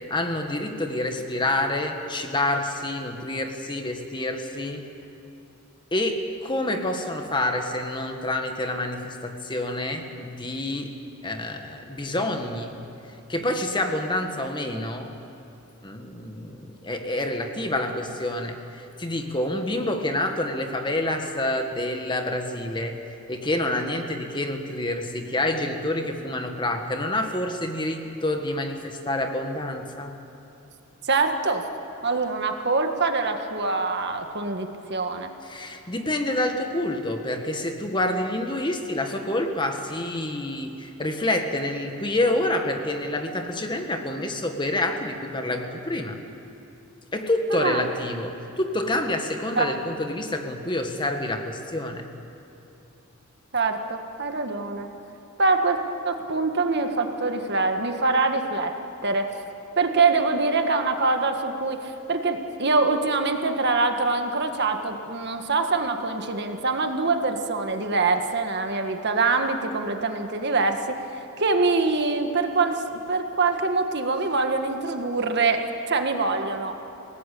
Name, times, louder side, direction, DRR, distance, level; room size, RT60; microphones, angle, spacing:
voice 1, 0.1-4.8 5.9-10.9 11.2-12.7 13.3-15.1 15.8-22.9 23.3-30.1 35.4-46.2 47.1-52.1, left 1 dB, 20° left, 5 dB, 1.6 m, -27 dB
voice 2, 31.0-31.6 32.0-35.3 47.5-47.8 49.5-49.8 53.5-54.9 55.4-55.8 56.0-58.7 59.0-59.4 59.8-76.8, right 3 dB, 50° right, 5 dB, 1.7 m, -24 dB
28.5 x 18.5 x 8.5 m, 2.9 s
head